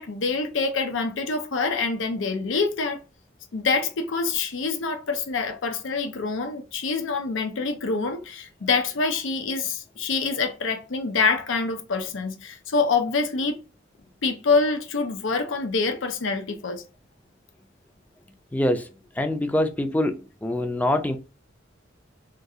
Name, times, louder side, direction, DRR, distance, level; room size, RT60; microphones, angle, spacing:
voice 1, 0.0-3.0 3.5-13.6 14.2-16.8, left 4 dB, 80° left, 0.6 m, -26 dB
voice 2, 18.5-18.9 19.2-21.2, left 1 dB, 10° left, 0.4 m, -24 dB
3.6 x 2.4 x 2.7 m
head